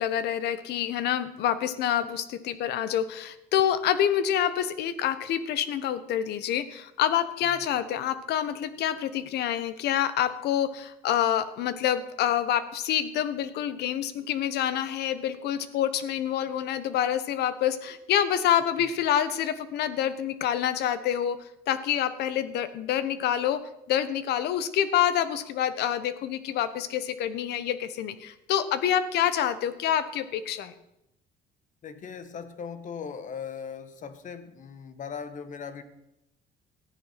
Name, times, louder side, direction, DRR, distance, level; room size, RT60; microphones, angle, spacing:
voice 1, 0.0-21.4 21.7-23.6 23.9-30.7, left 10 dB, 75° left, 14 dB, 1.2 m, -27 dB
voice 2, 31.8-35.8, left 6 dB, 50° left, 11 dB, 1.5 m, -39 dB
14.5 x 10.0 x 5.8 m, 0.85 s
cardioid pair, 110°, 17 cm